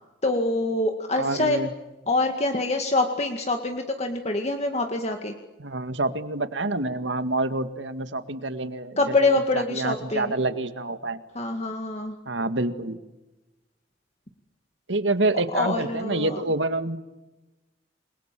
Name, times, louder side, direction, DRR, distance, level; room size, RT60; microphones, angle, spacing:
voice 1, 0.2-1.6 2.1-5.3 9.0-10.3 11.4-12.2 15.5-16.4, left 2 dB, 35° left, 4 dB, 2.1 m, -25 dB
voice 2, 1.2-1.7 5.6-11.2 12.3-13.0 14.9-17.0, right 2 dB, 85° right, 10 dB, 2.0 m, -27 dB
29.0 x 22.5 x 7.7 m, 1.0 s
head